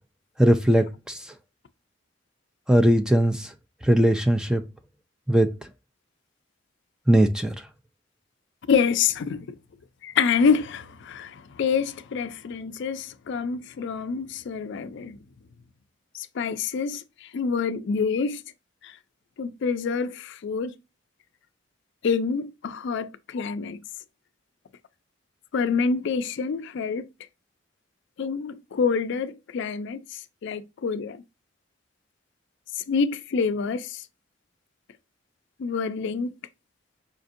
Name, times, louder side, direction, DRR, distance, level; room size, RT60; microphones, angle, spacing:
voice 1, 0.4-1.2 2.7-3.5 3.8-4.6 5.3-5.5 7.1-7.6, equal, 5° right, 0.4 m, -19 dB
voice 2, 8.7-9.6 10.0-15.2 16.1-18.4 18.8-18.9 19.4-20.8 22.0-23.8 25.5-27.1 28.2-31.2 32.7-34.0 35.6-36.4, left 5 dB, 65° left, 0.4 m, -27 dB
5.0 x 2.6 x 2.5 m
head